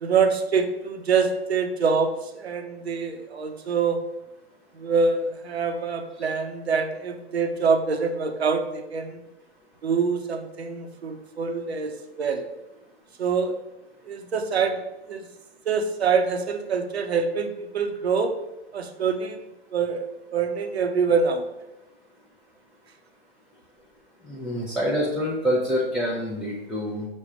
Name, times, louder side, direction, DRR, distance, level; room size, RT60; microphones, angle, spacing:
voice 1, 0.0-4.0 4.7-9.2 9.8-12.4 13.2-13.6 14.1-15.2 15.7-18.3 18.7-19.4 19.7-21.4, right 5 dB, 85° right, 6 dB, 0.6 m, -25 dB
voice 2, 24.2-27.1, equal, ahead, -6 dB, 0.4 m, -26 dB
5.3 x 2.2 x 4.7 m, 0.98 s
hypercardioid pair, 110°, 31 cm